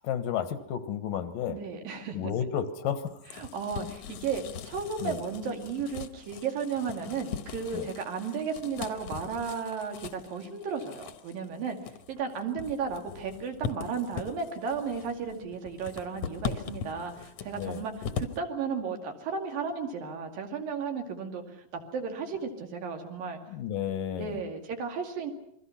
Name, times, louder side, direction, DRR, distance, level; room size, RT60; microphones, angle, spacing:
voice 1, 0.0-1.6 2.1-3.2 5.0-5.2 7.7-7.9 17.6-17.9 23.5-24.4, left 9 dB, 85° left, 11 dB, 3.1 m, -32 dB
voice 2, 1.5-2.2 3.4-21.7 21.9-23.4 24.2-25.3, right 5 dB, 85° right, 4 dB, 4.2 m, -34 dB
sound 1, 3.0-18.4, left 7 dB, 65° left, 1.8 m, -40 dB
27.5 x 22.0 x 5.9 m, 0.75 s
omnidirectional pair, 3.9 m